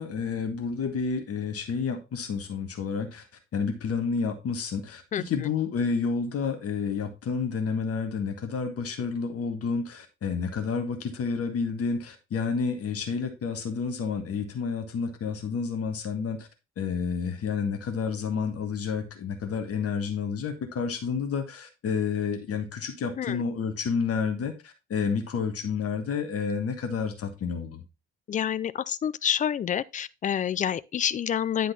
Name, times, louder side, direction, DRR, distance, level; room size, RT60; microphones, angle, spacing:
voice 1, 0.0-3.2 3.5-16.5 16.8-27.8, left 5 dB, 45° left, 1.5 m, -30 dB
voice 2, 28.3-31.7, left 9 dB, 25° left, 0.3 m, -28 dB
9.9 x 4.0 x 4.1 m
figure-of-eight pair, 45°, 34 cm